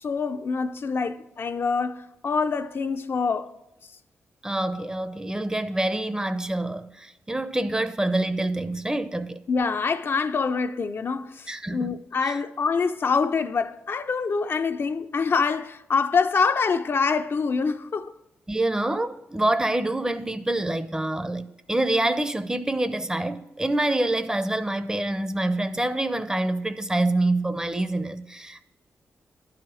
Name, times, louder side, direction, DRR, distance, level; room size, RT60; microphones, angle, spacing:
voice 1, 0.0-3.5 9.5-18.1, left 5 dB, 50° left, 0.5 m, -25 dB
voice 2, 4.4-9.4 11.5-11.9 12.2-12.4 18.5-28.6, right 1 dB, 15° right, 0.6 m, -26 dB
11.0 x 4.9 x 6.1 m
cardioid pair, 55°, 5 cm